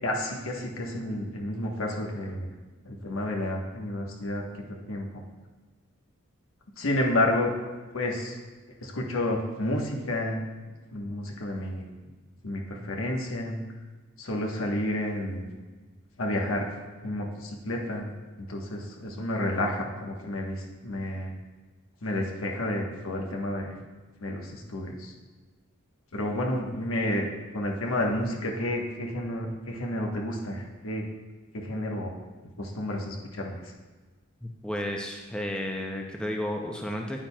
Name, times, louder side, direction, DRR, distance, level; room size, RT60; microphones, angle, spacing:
voice 1, 0.0-2.5 2.8-5.2 6.8-7.5 7.9-8.4 8.8-10.4 10.7-11.9 12.4-13.6 14.2-15.5 16.2-16.7 17.0-18.1 18.4-21.3 22.0-23.7 24.2-25.1 26.1-31.1 31.5-32.1 32.6-33.6, left 1 dB, 80° left, 1 dB, 1.1 m, -30 dB
voice 2, 34.4-37.3, left 1 dB, 5° left, 1 dB, 0.5 m, -32 dB
8.9 x 8.9 x 2.3 m, 1.3 s
head